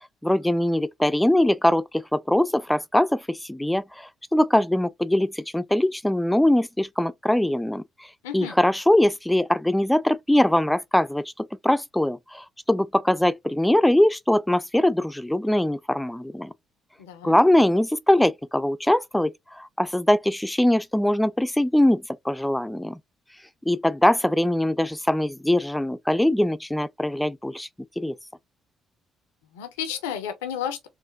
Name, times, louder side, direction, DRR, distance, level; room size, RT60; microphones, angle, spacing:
voice 1, 0.2-1.8 2.1-7.8 8.3-16.5 17.2-23.0 23.7-27.7 28.0-28.1, left 1 dB, 5° left, 0.4 m, -22 dB
voice 2, 8.2-8.6 17.0-17.4 29.5-30.9, left 9 dB, 90° left, 0.6 m, -32 dB
4.0 x 2.5 x 2.4 m
hypercardioid pair, 50°, 0 cm